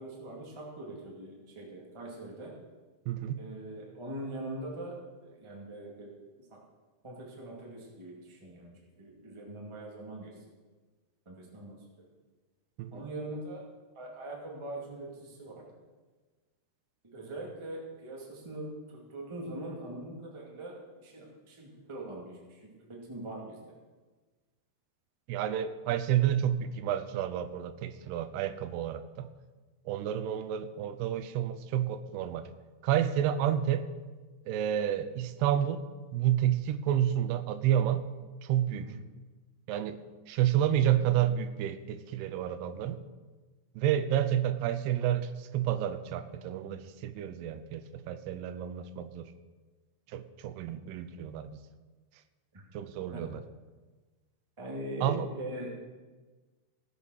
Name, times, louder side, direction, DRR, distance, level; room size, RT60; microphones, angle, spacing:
voice 1, 0.0-2.6 3.4-6.1 6.5-6.6 7.0-10.4 11.2-12.1 12.9-13.7 13.9-15.7 17.0-23.6 38.7-38.9 52.5-52.6 53.1-53.2 54.6-55.7, right 1 dB, 15° right, -2 dB, 1.2 m, -42 dB
voice 2, 3.1-3.4 12.8-13.0 25.3-29.3 29.9-32.5 32.8-33.8 34.5-35.8 36.1-38.0 38.4-38.9 39.7-40.0 40.3-43.0 43.8-49.3 50.1-51.5 52.7-53.4 55.0-55.3, right 10 dB, 85° right, 12 dB, 2.7 m, -30 dB
17.0 x 7.0 x 6.4 m, 1.3 s
omnidirectional pair, 4.8 m